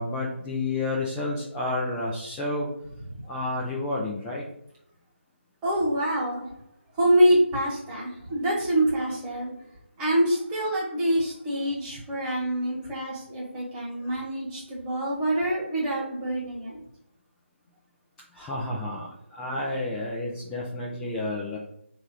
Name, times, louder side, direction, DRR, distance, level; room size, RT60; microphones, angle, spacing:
voice 1, 0.0-2.7 3.3-4.4 18.3-21.6, left 2 dB, 5° left, -5 dB, 0.4 m, -30 dB
voice 2, 5.6-6.5 6.9-9.5 10.0-16.8, right 1 dB, 10° right, -6 dB, 1.3 m, -25 dB
3.8 x 2.7 x 4.6 m, 0.74 s
figure-of-eight pair, 160°, 7 cm